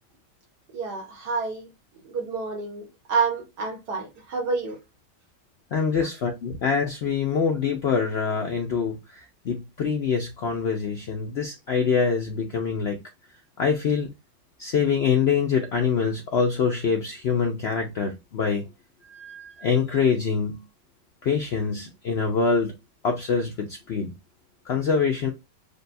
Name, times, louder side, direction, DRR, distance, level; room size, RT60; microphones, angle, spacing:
voice 1, 0.7-1.7 2.0-4.8 6.0-6.1, right 4 dB, 70° right, 1.6 m, -29 dB
voice 2, 5.7-13.0 13.6-14.1 14.6-18.7 19.1-20.6 21.2-22.7 23.0-24.1 24.7-25.3, left 6 dB, 85° left, 0.5 m, -25 dB
6.5 x 2.3 x 2.6 m
omnidirectional pair, 1.8 m